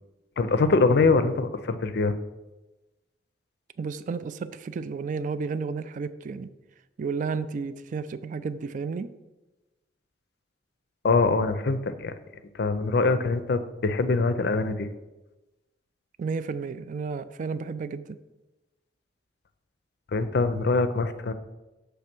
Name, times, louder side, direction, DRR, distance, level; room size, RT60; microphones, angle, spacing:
voice 1, 0.4-2.2 11.0-12.1 12.5-14.9 20.1-21.3, left 3 dB, 65° left, 11 dB, 0.5 m, -23 dB
voice 2, 3.8-6.5 7.0-9.1 16.2-18.2, right 5 dB, 45° right, 13 dB, 0.3 m, -32 dB
6.4 x 3.4 x 5.9 m, 1.1 s
head